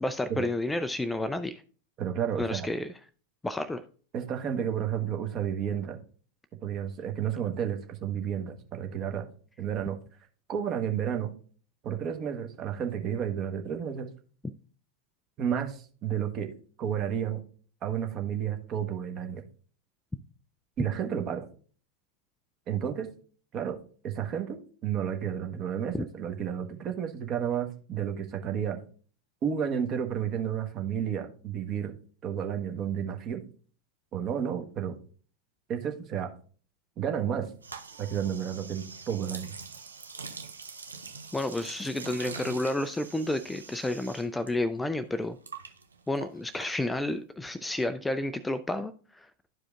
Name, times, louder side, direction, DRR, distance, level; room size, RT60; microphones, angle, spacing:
voice 1, 0.0-1.6 2.4-2.9 3.4-3.8 25.9-26.0 41.3-45.4 46.1-49.3, left 1 dB, 5° left, 0.4 m, -31 dB
voice 2, 2.0-2.7 4.1-6.0 6.6-9.3 9.6-10.0 10.5-11.3 11.8-14.1 15.4-16.5 16.8-17.4 17.8-19.4 20.8-21.5 22.7-23.1 23.5-23.8 24.0-28.8 29.4-31.9 32.2-33.4 34.1-34.9 35.7-36.3 37.0-37.5 38.0-39.5, right 8 dB, 35° right, 1.2 m, -31 dB
sound 1, 37.6-44.5 44.8-47.2, right 4 dB, 75° right, 0.8 m, -44 dB
12.5 x 4.9 x 2.4 m
figure-of-eight pair, 90°, 0 cm